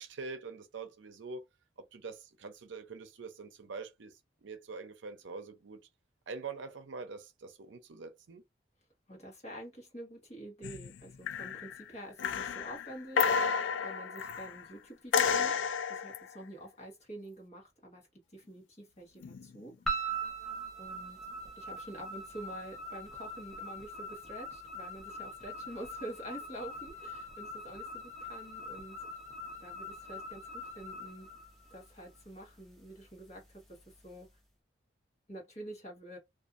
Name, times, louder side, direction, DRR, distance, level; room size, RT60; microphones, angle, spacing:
voice 1, 0.0-1.4 1.8-4.1 4.4-5.8 6.3-8.4, right 4 dB, 85° right, 0.6 m, -44 dB
voice 2, 9.1-15.6 15.9-19.7 20.1-20.2 20.8-21.2 21.6-29.0 29.6-31.3 31.7-34.3 35.3-36.2, right 1 dB, 35° left, 1.2 m, -47 dB
sound 1, 10.6-11.0 11.3-11.8 12.2-14.6 15.1-16.2 19.2-19.5, left 6 dB, 85° left, 0.3 m, -31 dB
sound 2, 19.9-32.2, right 2 dB, ahead, 0.8 m, -42 dB
2.6 x 2.4 x 2.4 m
head